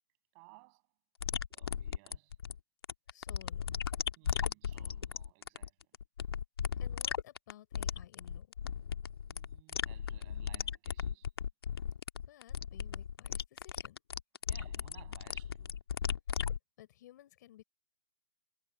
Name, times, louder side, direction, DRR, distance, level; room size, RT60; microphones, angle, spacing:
voice 1, 0.3-0.9 1.5-2.4 4.2-5.9 9.3-11.3 14.5-15.8, right 32 dB, 35° right, 8.0 m, -60 dB
sound 1, 1.2-16.6, left 7 dB, 80° left, 1.7 m, -37 dB
voice 2, 3.1-3.8 6.8-8.5 12.3-14.0 16.8-17.6, left 13 dB, 50° left, 3.9 m, -56 dB
hypercardioid pair, 145°, 12 cm